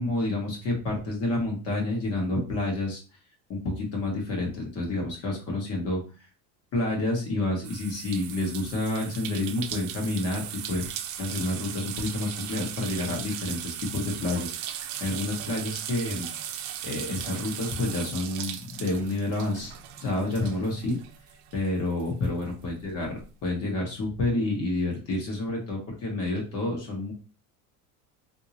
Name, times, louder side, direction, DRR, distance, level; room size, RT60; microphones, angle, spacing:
voice 1, 0.0-3.0 3.5-6.0 6.7-10.8 11.2-19.7 20.0-21.0 21.5-23.1 23.4-27.1, left 2 dB, 35° left, 0 dB, 1.2 m, -29 dB
sound 1, 7.6-21.7 22.0-23.2, right 10 dB, 75° right, 0.6 m, -38 dB
3.7 x 2.7 x 2.8 m, 0.34 s
cardioid pair, 165°, 41 cm